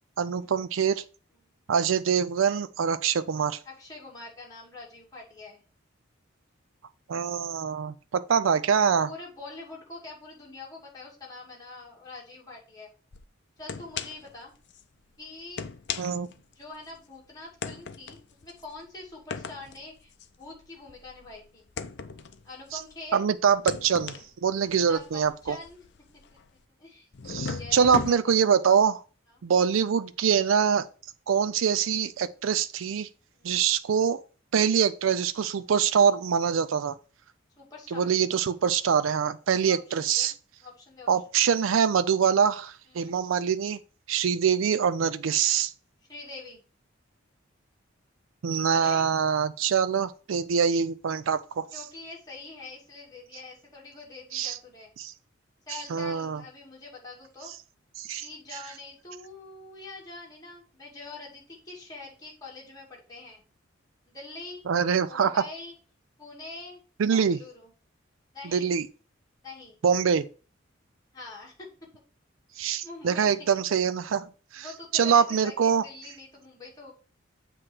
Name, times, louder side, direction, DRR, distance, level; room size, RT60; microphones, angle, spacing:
voice 1, 0.2-1.0 1.7-3.6 7.1-9.1 16.0-16.3 23.1-24.1 24.4-25.6 27.3-29.0 29.4-30.9 31.3-33.1 33.4-34.2 34.5-37.0 37.9-40.3 41.1-43.8 44.1-45.7 48.4-51.7 54.3-54.6 55.0-55.1 55.9-56.4 58.0-58.3 64.7-65.4 67.0-67.4 68.4-68.9 69.8-70.2 72.6-74.3 74.5-74.6 74.9-75.8, right 7 dB, 80° right, 0.4 m, -24 dB
voice 2, 3.6-5.6 9.0-12.9 13.6-14.5 15.2-15.6 16.6-20.1 20.4-21.7 22.4-23.2 24.6-25.9 26.3-26.4 26.8-28.2 33.3-33.6 37.6-38.1 39.7-40.3 40.6-41.1 42.9-43.1 46.1-46.6 48.7-49.0 51.7-54.9 55.7-57.5 58.2-63.4 64.1-64.6 65.1-65.7 66.2-66.8 67.1-67.7 68.3-68.7 69.4-69.8 71.1-71.7 72.5-73.3 74.6-76.9, left 3 dB, 20° left, 2.4 m, -44 dB
sound 1, 13.1-13.2 13.7-14.3 14.7-14.8 15.4-17.0 17.6-23.1 23.5-26.6 27.1-28.1, left 5 dB, 55° left, 0.5 m, -37 dB
7.7 x 3.1 x 6.2 m
head